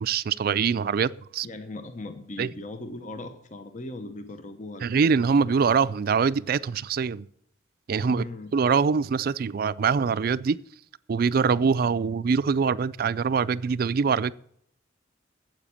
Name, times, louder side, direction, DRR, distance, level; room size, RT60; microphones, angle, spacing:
voice 1, 0.0-1.5 2.4-2.5 4.8-7.3 7.9-8.3 8.5-10.6 11.1-14.3, right 5 dB, 55° right, 0.4 m, -24 dB
voice 2, 1.4-5.0 8.0-8.6, left 2 dB, 40° left, 0.9 m, -39 dB
9.1 x 7.9 x 8.6 m
head